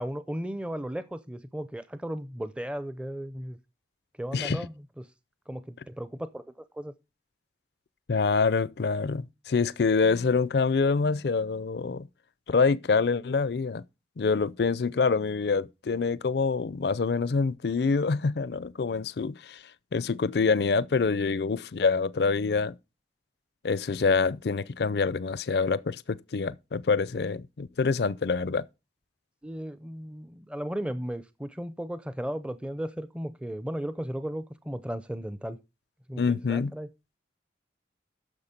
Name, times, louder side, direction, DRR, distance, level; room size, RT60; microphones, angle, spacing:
voice 1, 0.0-3.6 4.2-5.1 5.5-6.4 6.7-6.9 29.4-35.6 36.1-36.9, equal, 5° right, 0.5 m, -35 dB
voice 2, 8.1-12.1 12.5-13.8 14.2-19.6 19.9-22.7 23.6-28.6 36.1-36.7, left 4 dB, 65° left, 0.5 m, -26 dB
9.8 x 6.6 x 5.2 m
head